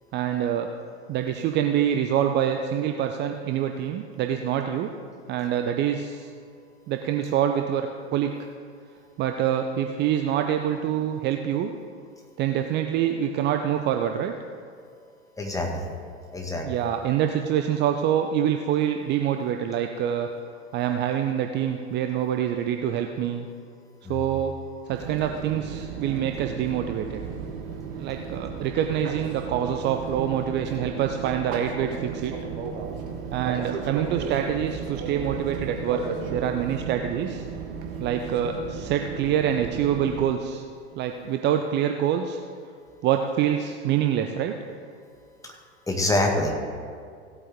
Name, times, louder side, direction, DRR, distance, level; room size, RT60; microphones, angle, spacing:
voice 1, 0.1-0.7 1.1-4.9 5.3-6.3 6.9-8.3 9.2-11.7 12.4-14.3 16.5-20.3 20.7-23.5 24.1-24.5 24.9-27.2 28.0-32.4 33.3-36.0 36.3-37.4 38.0-40.6 40.9-42.4 43.0-44.5, right 9 dB, 30° right, 5 dB, 0.6 m, -26 dB
voice 2, 15.4-15.9 16.3-16.7 24.0-24.2 45.9-46.5, left 2 dB, 10° left, 1 dB, 1.7 m, -25 dB
Fixed-wing aircraft airplane, 24.9-40.3, right 5 dB, 45° right, 1.5 m, -35 dB
17.0 x 8.4 x 3.6 m, 2.3 s
figure-of-eight pair, 85°, 35 cm